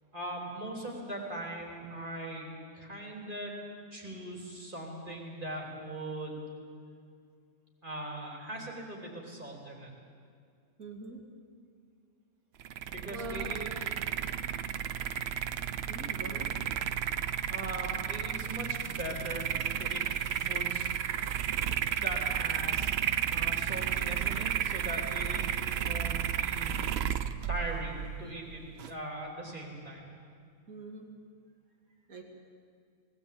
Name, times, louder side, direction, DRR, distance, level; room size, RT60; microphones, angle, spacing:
voice 1, 0.1-2.5 2.7-3.6 3.9-6.4 7.8-9.9 12.8-14.0 17.5-19.5 19.8-20.0 20.4-20.9 21.9-22.9 23.3-27.0 27.5-28.6 28.9-30.0, right 1 dB, 35° right, -1 dB, 3.8 m, -40 dB
voice 2, 10.8-11.2 13.1-13.5 15.9-16.5 30.7-31.1 32.1-32.2, right 2 dB, 80° right, 2 dB, 2.9 m, -43 dB
sound 1, 12.6-28.9, right 9 dB, 60° right, 0.8 m, -33 dB
19.5 x 17.5 x 8.7 m, 2.2 s
omnidirectional pair, 1.5 m